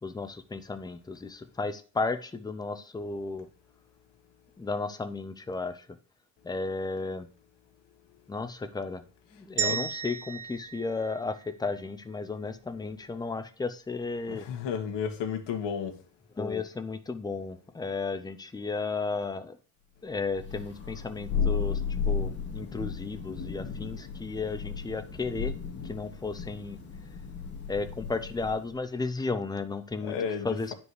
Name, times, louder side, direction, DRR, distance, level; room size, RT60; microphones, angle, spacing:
voice 1, 0.0-3.5 4.6-5.9 6.4-7.3 8.3-9.0 9.3-14.4 16.4-19.6 20.0-21.8 22.1-25.5 25.8-26.8 27.7-30.2 30.4-30.7, left 3 dB, 10° left, 0.6 m, -34 dB
sound 1, 9.6-11.8, right 8 dB, 85° right, 2.2 m, -34 dB
voice 2, 14.3-16.0 30.0-30.7, left 7 dB, 70° left, 1.9 m, -33 dB
Thunder, 20.3-28.7, left 6 dB, 25° left, 2.2 m, -34 dB
9.7 x 5.3 x 4.8 m
cardioid pair, 145°, 44 cm